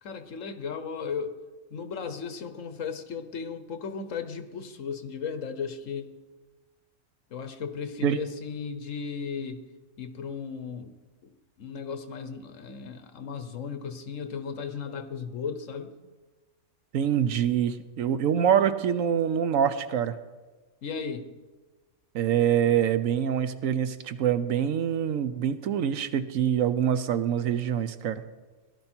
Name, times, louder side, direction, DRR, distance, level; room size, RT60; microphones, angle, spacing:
voice 1, 0.0-1.3 1.7-6.1 7.3-9.6 10.0-10.9 11.2-11.3 11.6-15.9 20.8-21.3, left 6 dB, 75° left, 9 dB, 1.3 m, -35 dB
voice 2, 16.9-20.1 22.1-28.2, right 9 dB, 90° right, 12 dB, 1.2 m, -25 dB
17.5 x 11.5 x 4.4 m, 1.3 s
omnidirectional pair, 1.3 m